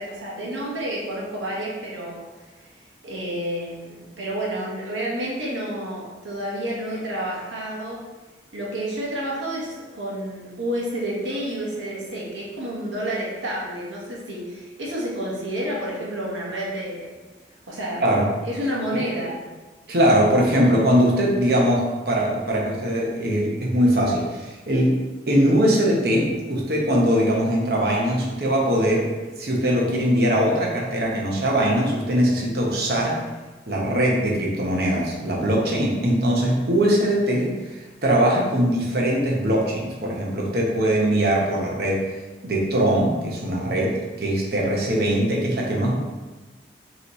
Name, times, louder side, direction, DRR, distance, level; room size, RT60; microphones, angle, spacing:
voice 1, 0.0-8.0 8.5-17.1 17.7-18.0 18.4-19.4, right 1 dB, 90° right, -4 dB, 1.3 m, -30 dB
voice 2, 19.9-25.0 25.3-29.1 29.4-33.2 33.7-42.1 42.4-46.0, equal, 55° right, -2 dB, 0.9 m, -21 dB
5.2 x 3.1 x 3.1 m, 1.2 s
head